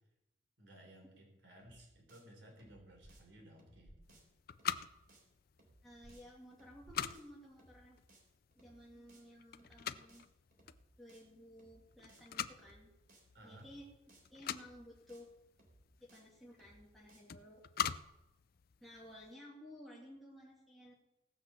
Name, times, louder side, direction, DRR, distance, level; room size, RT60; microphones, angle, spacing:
voice 1, 0.6-4.2 13.3-13.7, right 1 dB, 70° right, 2 dB, 3.9 m, -58 dB
sound 1, 1.6-1.8 2.1-2.2 2.5-2.8 3.1-3.2 3.6-3.8 4.1-4.2 4.5-4.8 5.1-5.2 5.6-5.8 6.1-6.2 6.5-6.8 7.1-7.2 7.6-7.8 8.1-8.2 8.5-8.8 9.1-9.2 9.6-9.8 10.1-10.2 10.5-10.8 11.1-11.2 11.6-11.8 12.1-12.2 12.5-12.8 13.1-13.2 13.6-13.8 14.1-14.2 14.5-14.8 15.1-15.2 15.6-15.8 16.1-16.2 16.5-16.8 17.1-17.2, right 2 dB, 50° right, 3.7 m, -65 dB
sound 2, 3.0-3.1 3.8-4.0 6.0-6.1 6.8-7.0, equal, 25° left, 3.1 m, -57 dB
sound 3, 4.0-19.3, left 8 dB, 50° left, 0.4 m, -45 dB
voice 2, 5.8-8.0 8.6-10.2 11.0-12.9 13.4-13.8 14.3-15.3 16.0-17.6 18.8-20.9, equal, ahead, -5 dB, 2.4 m, -55 dB
18.0 x 6.2 x 6.9 m, 0.95 s
head